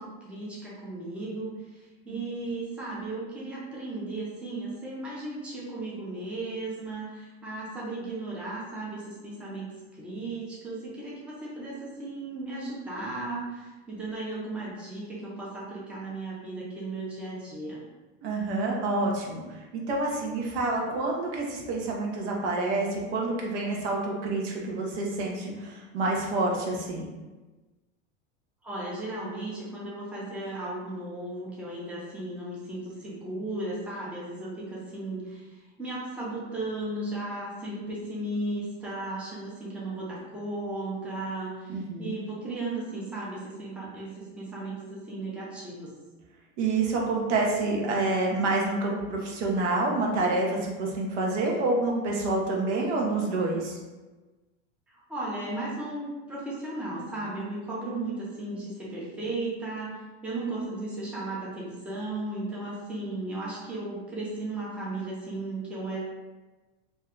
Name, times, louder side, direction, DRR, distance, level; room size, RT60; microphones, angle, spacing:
voice 1, 0.0-17.8 28.6-45.9 54.9-66.0, right 2 dB, 5° right, -6 dB, 0.5 m, -35 dB
voice 2, 18.2-27.1 41.7-42.2 46.6-53.8, right 2 dB, 85° right, -1 dB, 0.9 m, -28 dB
2.7 x 2.2 x 3.6 m, 1.2 s
supercardioid pair, 150°, 35 cm